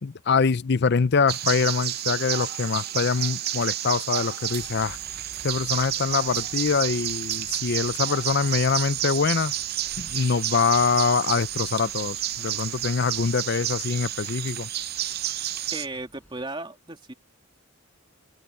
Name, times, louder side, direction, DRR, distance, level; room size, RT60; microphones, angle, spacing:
voice 1, 0.0-5.0 5.4-9.5 10.0-14.7, left 5 dB, 50° left, 0.5 m, -24 dB
sound 1, 1.3-15.9, right 13 dB, 45° right, 0.6 m, -30 dB
sound 2, 4.6-16.4, equal, 10° left, 5.5 m, -53 dB
voice 2, 15.7-17.1, right 2 dB, 25° right, 2.7 m, -35 dB
open air
head